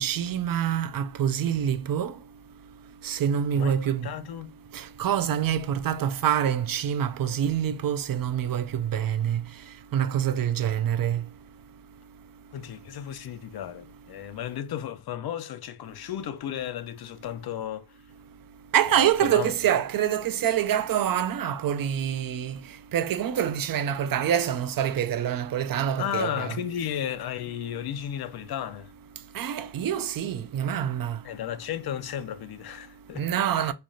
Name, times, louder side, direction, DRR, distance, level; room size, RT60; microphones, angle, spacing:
voice 1, 0.0-2.1 3.0-4.1 4.7-9.5 9.9-11.3 18.7-22.6 22.9-26.6 29.3-31.2 33.2-33.7, right 9 dB, 70° right, 0.5 m, -26 dB
voice 2, 4.0-4.5 12.5-18.0 18.9-19.5 26.0-28.9 31.2-33.3 33.6-33.7, left 10 dB, 90° left, 0.5 m, -34 dB
3.3 x 2.4 x 3.9 m
wide cardioid pair, 145°, 36 cm